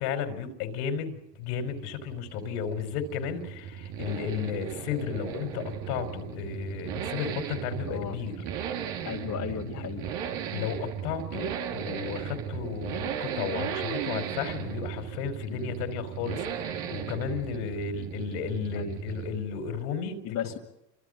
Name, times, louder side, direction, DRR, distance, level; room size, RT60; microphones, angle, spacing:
voice 1, 0.0-8.4 9.7-9.8 10.5-20.2, left 7 dB, 70° left, 7 dB, 4.5 m, -33 dB
Accelerating revving vroom, 1.4-19.5 19.8-19.9, right 8 dB, 65° right, 3.2 m, -36 dB
voice 2, 7.9-8.2 9.0-10.1 13.7-13.8 15.4-15.7 18.7-19.0 20.2-20.6, left 9 dB, 45° left, 0 dB, 2.5 m, -36 dB
29.5 x 25.5 x 5.2 m, 0.87 s
hypercardioid pair, 85°, 47 cm